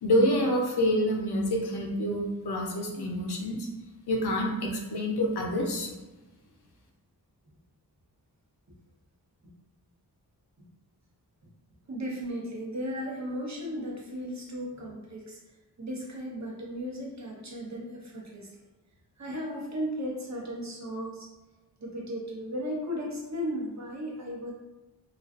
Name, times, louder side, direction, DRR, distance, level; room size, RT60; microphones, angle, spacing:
voice 1, 0.0-3.7 4.1-5.9, equal, 75° left, 1 dB, 0.6 m, -27 dB
voice 2, 11.9-15.4 15.8-18.5 19.2-21.3 21.8-24.5, equal, 45° right, -2 dB, 0.7 m, -35 dB
2.4 x 2.3 x 2.3 m, 1.1 s
wide cardioid pair, 60°, 40 cm